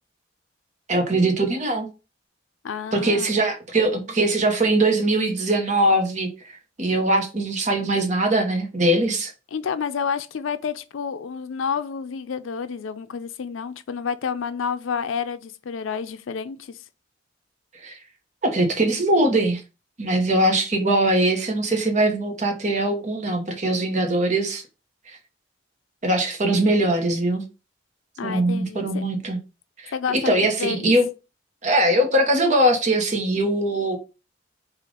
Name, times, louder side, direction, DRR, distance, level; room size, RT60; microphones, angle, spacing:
voice 1, 0.9-1.9 2.9-6.3 6.8-9.3 17.8-17.9 18.4-19.6 20.0-24.6 26.0-27.4 28.2-29.4 29.8-31.0 31.6-34.0, right 1 dB, 35° right, 0.9 m, -21 dB
voice 2, 2.6-3.3 9.5-16.8 28.2-29.0 29.9-30.9, left 6 dB, 85° left, 0.4 m, -29 dB
5.0 x 2.4 x 3.8 m
head